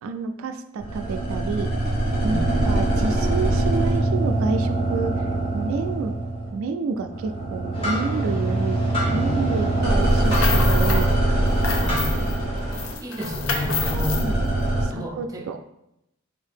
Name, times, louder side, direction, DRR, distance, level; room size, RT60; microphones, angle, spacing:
voice 1, 0.0-1.7 2.2-5.2 5.5-6.2 6.5-8.8 9.1-12.3 14.0-14.5 14.8-15.6, right 4 dB, 80° right, 8 dB, 0.3 m, -30 dB
sound 1, 0.8-6.7 7.0-14.9, right 1 dB, 50° left, 1.3 m, -23 dB
voice 2, 2.2-2.7 9.0-9.5 11.8-12.2 12.7-14.2 14.9-15.5, equal, 15° right, 2 dB, 0.4 m, -32 dB
sound 2, 7.7-12.9, left 1 dB, 30° left, 1.0 m, -33 dB
sound 3, 10.1-11.1 11.4-12.4 12.7-14.3, left 5 dB, 80° left, 0.5 m, -29 dB
4.0 x 2.7 x 3.4 m, 0.83 s
head